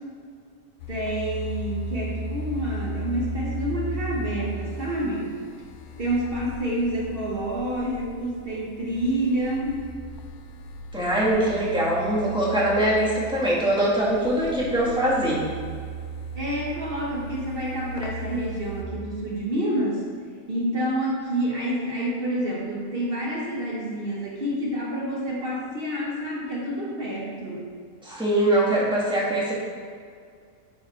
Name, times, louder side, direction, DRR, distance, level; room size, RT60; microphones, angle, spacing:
sound 1, 0.8-18.9, right 1 dB, 70° left, 0.7 m, -36 dB
voice 1, 0.9-5.4 6.0-9.8 16.3-20.0 20.5-27.7, right 1 dB, 40° right, -4 dB, 1.2 m, -28 dB
voice 2, 10.9-15.4 28.0-29.5, right 1 dB, 5° right, -8 dB, 1.9 m, -22 dB
10.0 x 3.9 x 4.4 m, 2.1 s
omnidirectional pair, 1.6 m